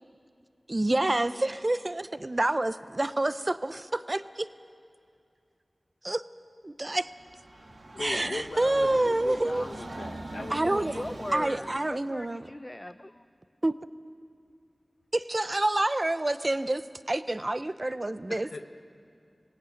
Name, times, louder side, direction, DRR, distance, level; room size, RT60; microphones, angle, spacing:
voice 1, 0.7-4.5 6.0-6.2 6.6-7.1 8.0-9.7 10.5-11.0 11.3-12.5 13.6-13.7 15.1-18.6, right 2 dB, 40° right, 13 dB, 0.7 m, -28 dB
Train, 7.0-11.9, right 2 dB, 75° right, 1.5 m, -42 dB
voice 2, 7.5-11.0 18.3-18.6, left 3 dB, 90° left, 4 dB, 1.0 m, -39 dB
voice 3, 10.3-13.3, left 1 dB, 25° left, 10 dB, 0.5 m, -39 dB
20.5 x 17.0 x 9.1 m, 2.3 s
wide cardioid pair, 50°, 0 cm